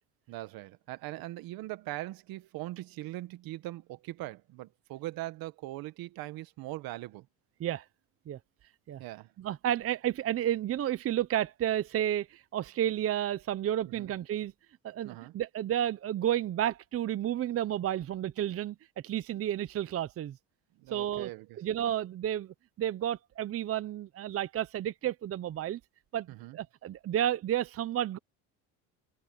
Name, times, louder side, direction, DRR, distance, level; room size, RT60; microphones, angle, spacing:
voice 1, 0.3-7.3 9.0-9.3 13.9-14.1 15.0-15.3 20.8-21.6 26.3-26.6, right 17 dB, 70° right, 1.7 m, -41 dB
voice 2, 9.4-14.5 14.8-18.8 19.0-20.4 20.9-21.3 21.6-25.8 26.1-26.3 26.5-28.2, right 11 dB, 40° right, 0.8 m, -31 dB
cardioid pair, 110°, 37 cm